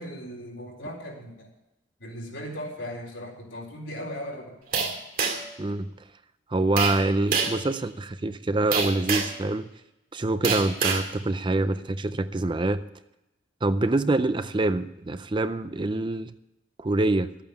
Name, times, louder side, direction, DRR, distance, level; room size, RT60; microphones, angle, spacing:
voice 1, 0.0-1.5 2.0-4.5, equal, 75° left, -1 dB, 4.1 m, -37 dB
sound 1, 4.7-5.6 6.8-7.0 7.3-7.6 8.7-9.4 10.4-11.1, right 5 dB, 45° right, 2.3 m, -26 dB
voice 2, 6.5-9.7 10.1-12.8 13.6-16.3 16.8-17.3, right 2 dB, 25° right, 12 dB, 0.5 m, -25 dB
13.0 x 8.8 x 7.1 m, 0.91 s
head